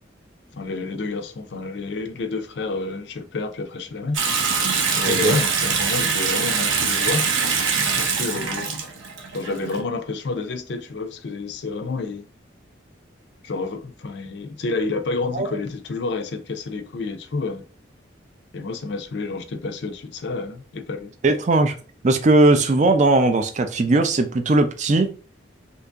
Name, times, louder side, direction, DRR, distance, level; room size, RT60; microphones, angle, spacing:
voice 1, 0.5-4.2 5.0-7.3 7.9-8.7 9.3-12.2 13.4-17.6 18.5-21.1, left 3 dB, 60° left, 0.4 m, -29 dB
Water tap faucet / Sink (filling or washing) / Bathtub (filling or washing), 4.1-9.8, right 5 dB, 85° right, 0.7 m, -23 dB
voice 2, 5.1-5.4 15.3-15.5 21.2-21.7 22.0-25.1, right 2 dB, 40° right, 0.4 m, -18 dB
2.8 x 2.6 x 3.4 m
head